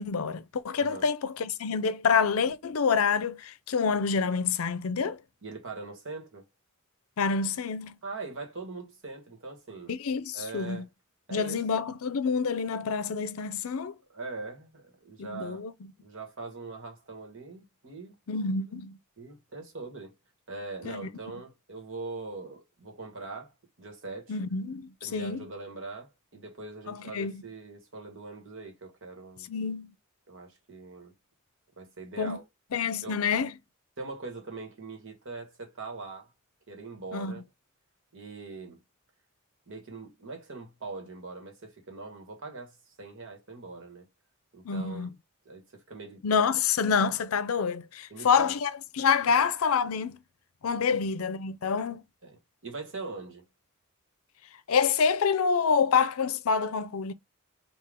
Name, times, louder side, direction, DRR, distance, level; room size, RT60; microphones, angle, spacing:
voice 1, 0.0-5.2 7.2-8.0 9.9-10.8 11.3-13.9 15.2-15.7 18.3-19.0 20.8-21.0 24.3-25.4 26.9-27.4 29.5-29.9 32.2-32.4 32.7-33.5 37.1-37.4 44.6-45.1 46.2-50.2 50.6-52.0 54.7-57.1, left 6 dB, 75° left, 0.5 m, -27 dB
voice 2, 5.4-6.5 8.0-9.9 10.3-10.9 11.3-11.6 14.1-15.6 16.0-18.1 19.2-20.1 20.5-23.5 23.8-24.4 25.0-29.5 30.3-31.1 31.8-32.4 33.0-33.2 34.0-36.3 36.7-37.4 38.1-38.8 39.7-44.0 44.5-45.1 45.4-46.2 48.1-48.6 49.3-49.4 50.9-51.0 52.2-53.4, right 3 dB, 65° right, 1.3 m, -42 dB
3.7 x 2.4 x 3.4 m
head